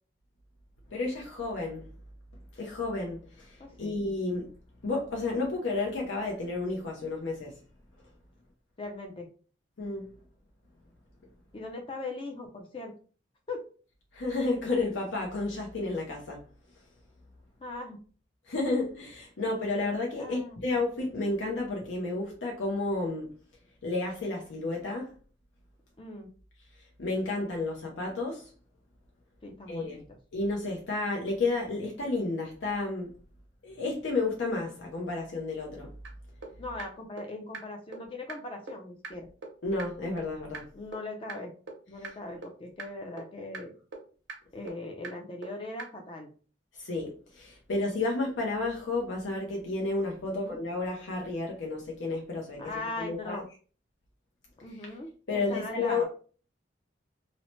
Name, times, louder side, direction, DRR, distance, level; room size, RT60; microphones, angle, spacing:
voice 1, 0.9-1.9 2.6-4.5 4.8-7.6 9.8-10.1 14.1-16.4 18.5-23.3 23.8-25.1 27.0-28.5 29.7-30.0 30.3-33.1 33.6-35.9 39.6-40.6 46.8-52.6 53.0-53.4 55.3-56.1, left 3 dB, 80° left, 0.6 m, -31 dB
voice 2, 3.6-3.9 8.8-9.3 11.5-12.9 13.5-13.7 17.6-18.0 20.2-20.6 26.0-26.3 29.4-30.2 36.6-39.3 40.7-41.5 41.9-43.7 44.5-46.3 50.2-50.6 52.6-53.4 54.6-56.1, left 2 dB, 25° left, 0.4 m, -40 dB
sound 1, 36.0-36.1 36.4-36.5 36.8-36.9 37.2-37.3 37.5-37.6 37.9-38.0 38.3-38.4 38.7-38.8 39.0-39.1 39.4-39.5 39.8-39.9 40.2-40.3 40.5-40.6 40.9-41.0 41.3-41.4 41.7-41.8 42.0-42.1 42.4-42.5 42.8-42.9 43.2-43.3 43.5-43.6 43.9-44.0 44.3-44.4 44.7-44.8 45.0-45.1 45.4-45.5 45.8-45.9, right 4 dB, 80° right, 0.7 m, -39 dB
2.7 x 2.0 x 3.0 m
head